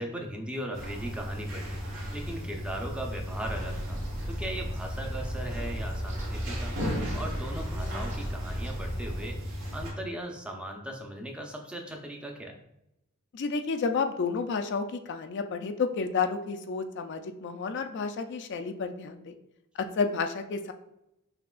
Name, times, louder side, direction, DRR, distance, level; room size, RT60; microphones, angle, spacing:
voice 1, 0.0-1.8 2.1-4.0 4.3-9.4 9.7-12.6, right 1 dB, 5° right, 2 dB, 0.5 m, -38 dB
sound 1, 0.7-9.9, equal, 75° right, 1.5 m, -36 dB
sound 2, 3.4-9.3, equal, 35° right, 1.3 m, -37 dB
voice 2, 13.3-19.3 19.8-20.7, left 5 dB, 55° left, 7 dB, 0.3 m, -31 dB
5.9 x 2.9 x 2.4 m, 0.84 s
head